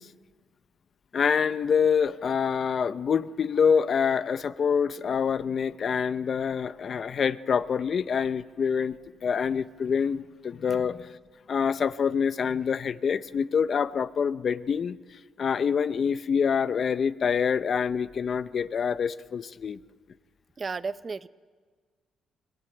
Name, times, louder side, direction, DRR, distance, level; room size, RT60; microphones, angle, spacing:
voice 1, 1.1-9.0 9.2-11.1 11.5-15.0 15.4-19.8, left 6 dB, 50° left, 14 dB, 0.8 m, -26 dB
voice 2, 20.6-21.3, right 4 dB, 35° right, 15 dB, 0.7 m, -33 dB
22.5 x 20.5 x 9.2 m, 1.5 s
cardioid pair, 90°, 0 cm